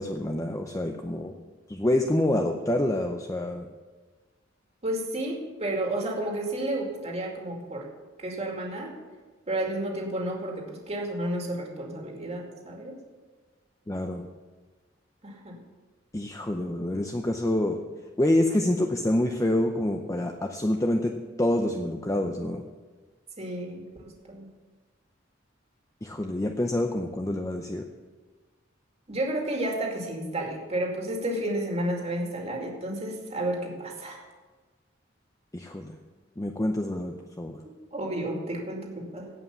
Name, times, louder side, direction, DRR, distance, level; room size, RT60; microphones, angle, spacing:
voice 1, 0.0-1.3 1.7-3.7 13.9-14.2 16.1-17.8 18.2-22.6 26.0-27.8 35.5-35.9 36.4-37.6, left 1 dB, 15° left, 3 dB, 0.6 m, -27 dB
voice 2, 4.8-7.9 8.2-8.9 9.5-13.0 15.2-15.6 23.4-24.5 29.1-34.2 37.9-39.3, right 1 dB, 35° right, 0 dB, 2.4 m, -31 dB
17.0 x 5.7 x 7.0 m, 1.3 s
head